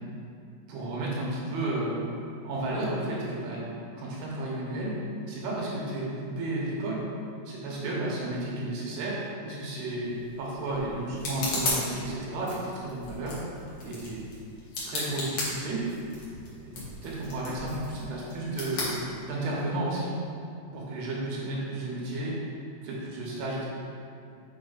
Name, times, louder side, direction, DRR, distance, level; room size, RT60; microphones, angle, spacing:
voice 1, 0.7-2.0 2.4-4.9 5.3-7.0 7.5-13.4 13.8-14.2 14.8-15.8 16.6-16.7 17.0-19.0 19.2-20.1 20.7-22.4 22.8-23.7, right 1 dB, 70° right, -5 dB, 2.8 m, -32 dB
sound 1, 9.9-19.7, left 2 dB, 80° left, 1.4 m, -36 dB
6.8 x 4.9 x 4.0 m, 2.4 s
omnidirectional pair, 5.1 m